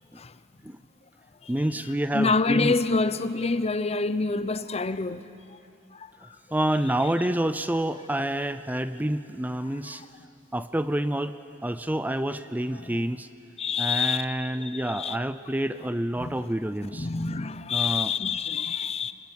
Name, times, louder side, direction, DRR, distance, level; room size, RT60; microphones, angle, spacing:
voice 1, 1.5-2.8 6.5-10.0 10.5-11.4 11.6-13.3 13.8-17.1 17.7-18.1, right 1 dB, 10° right, 0.5 m, -28 dB
voice 2, 2.1-5.3 5.9-6.4 9.9-10.1 12.8-13.0 13.6-14.3 14.6-15.2 16.2-16.3 16.9-19.1, left 4 dB, 35° left, 0.7 m, -27 dB
24.5 x 21.0 x 9.8 m
head